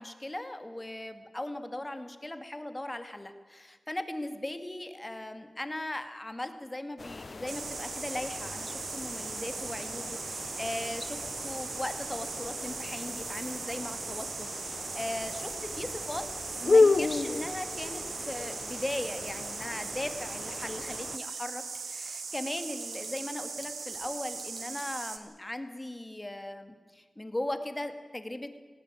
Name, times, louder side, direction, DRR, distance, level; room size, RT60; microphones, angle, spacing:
voice 1, 0.0-28.6, left 1 dB, 20° left, 9 dB, 2.3 m, -38 dB
sound 1, 7.0-21.2, left 3 dB, 60° left, 0.6 m, -33 dB
sound 2, 7.5-25.2, right 5 dB, 90° right, 1.9 m, -39 dB
Bicycle / Tick, 16.7-25.3, left 4 dB, 80° left, 4.7 m, -59 dB
19.0 x 18.0 x 9.2 m, 1.4 s
cardioid pair, 55°, 0 cm